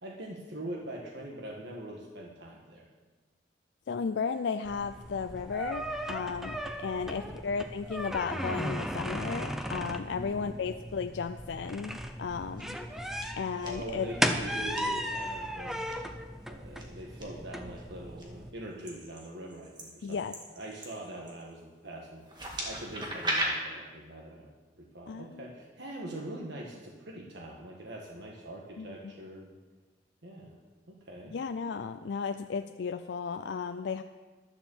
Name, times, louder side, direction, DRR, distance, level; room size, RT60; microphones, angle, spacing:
voice 1, 0.0-2.9 6.9-7.3 10.1-10.5 13.6-15.8 16.5-20.2 20.6-22.2 22.6-29.6 30.2-30.6 30.9-31.3, right 1 dB, 70° right, -1 dB, 1.5 m, -43 dB
voice 2, 3.9-14.1 20.0-20.3 25.1-25.5 28.8-28.9 31.3-34.0, left 5 dB, 70° left, 8 dB, 0.4 m, -34 dB
sound 1, 4.6-18.5, equal, ahead, 0.6 m, -36 dB
sound 2, 12.3-12.8 13.2-13.7 14.5-14.8 15.7-15.9 16.8-17.2 17.8-18.2 18.8-21.5 22.2-23.5, right 1 dB, 25° right, 1.8 m, -37 dB
11.5 x 7.0 x 7.1 m, 1.3 s
head